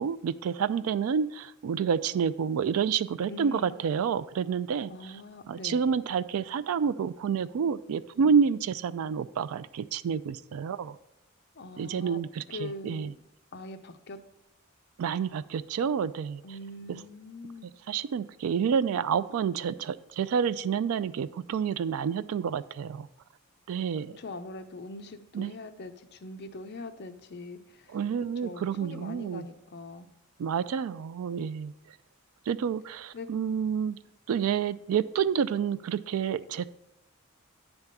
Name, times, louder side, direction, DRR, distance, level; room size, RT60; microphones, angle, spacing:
voice 1, 0.0-4.9 5.5-11.0 11.8-13.1 15.0-16.4 17.9-23.1 23.7-24.2 25.3-25.6 27.9-29.4 30.4-31.7 32.5-34.0 34.3-36.7, right 7 dB, 90° right, 14 dB, 0.3 m, -29 dB
voice 2, 3.3-3.8 4.9-5.9 11.6-12.2 12.5-13.1 13.5-14.2 16.4-17.7 24.2-30.1 33.1-33.3, left 2 dB, 55° left, 8 dB, 0.6 m, -42 dB
9.8 x 3.5 x 6.6 m, 0.82 s
head